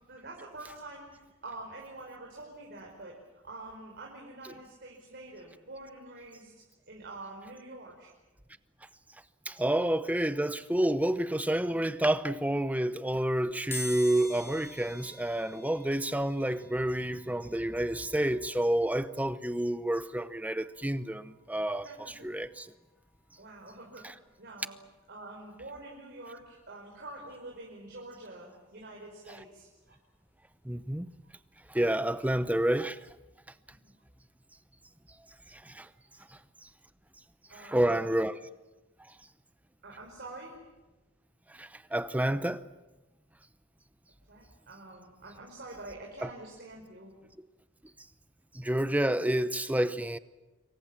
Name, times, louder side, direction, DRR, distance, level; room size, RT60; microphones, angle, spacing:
voice 1, 0.1-3.2 3.4-8.1 11.5-11.8 21.8-22.3 23.4-24.0 24.4-24.7 25.1-30.0 33.8-33.9 36.2-36.3 37.5-38.1 39.8-40.6 44.3-47.1, right 2 dB, 50° right, 4.9 m, -46 dB
voice 2, 9.5-22.7 30.6-31.1 31.7-33.0 35.5-35.9 37.5-38.4 41.5-42.6 46.2-46.3 48.5-50.2, right 1 dB, 5° right, 0.8 m, -29 dB
sound 1, 13.7-24.4 24.8-24.9 26.1-26.2 26.5-28.6 28.9-31.6 31.9-32.1 32.4-32.5, left 2 dB, 10° left, 4.2 m, -48 dB
26.5 x 24.0 x 7.4 m
head